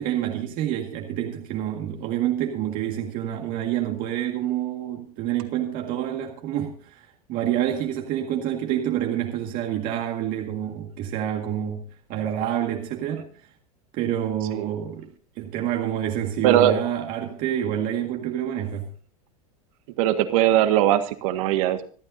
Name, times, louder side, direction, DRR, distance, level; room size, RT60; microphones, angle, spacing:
voice 1, 0.0-13.3 13.9-18.9, right 11 dB, 50° right, 1.9 m, -28 dB
voice 2, 16.4-16.8 20.0-21.9, right 12 dB, 65° right, 1.7 m, -20 dB
26.5 x 9.0 x 2.7 m
supercardioid pair, 120°, 19 cm